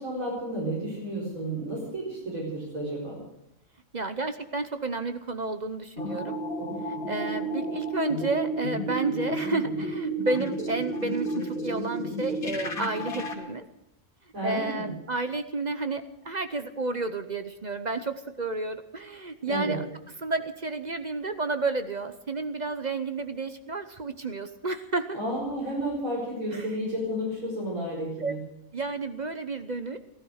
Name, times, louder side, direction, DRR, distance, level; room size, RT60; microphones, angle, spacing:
voice 1, 0.0-3.2 14.3-14.9 19.4-19.8 25.2-28.4, right 1 dB, 70° right, -5 dB, 5.1 m, -32 dB
voice 2, 3.9-6.4 6.8-13.6 14.4-25.2 26.5-26.8 28.2-28.3 28.7-30.0, right 3 dB, 40° right, 10 dB, 0.8 m, -31 dB
sound 1, 6.0-13.4, right 1 dB, 85° left, 2.6 m, -32 dB
15.5 x 14.0 x 6.4 m, 0.84 s
omnidirectional pair, 1.5 m